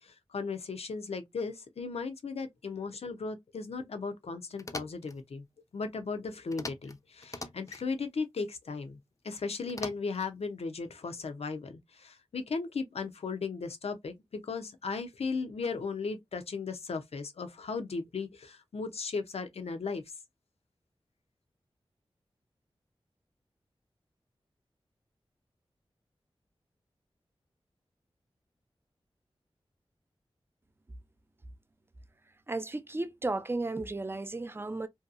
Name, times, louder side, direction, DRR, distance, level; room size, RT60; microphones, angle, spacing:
voice 1, 0.0-5.4 5.7-9.0 9.2-20.0, left 4 dB, 80° left, 0.5 m, -36 dB
sound 1, 4.6-5.2 6.5-7.0 7.2-7.8 9.7-10.3, left 2 dB, 30° left, 0.5 m, -42 dB
voice 2, 32.5-34.9, right 2 dB, 20° right, 0.4 m, -34 dB
2.7 x 2.2 x 2.4 m
cardioid pair, 40°, 10 cm